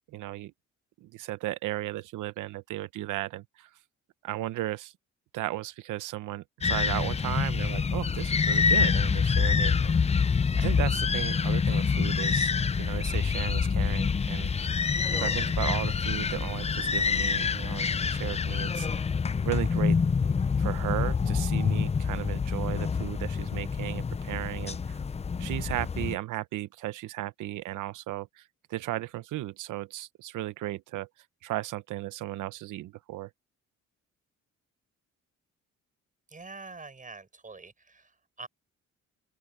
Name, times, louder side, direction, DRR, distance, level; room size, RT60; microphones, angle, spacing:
voice 1, 0.1-0.5 1.0-3.7 4.2-4.9 5.3-10.0 10.6-12.5 12.8-14.7 15.1-18.9 19.4-20.0 20.6-25.0 25.4-28.4 28.7-31.1 31.4-33.3, right 16 dB, 85° right, 1.0 m, -35 dB
sound 1, 6.6-26.2, left 5 dB, 20° left, 0.5 m, -26 dB
voice 2, 36.3-38.5, right 3 dB, 25° right, 7.2 m, -45 dB
open air
cardioid pair, 90°, 30 cm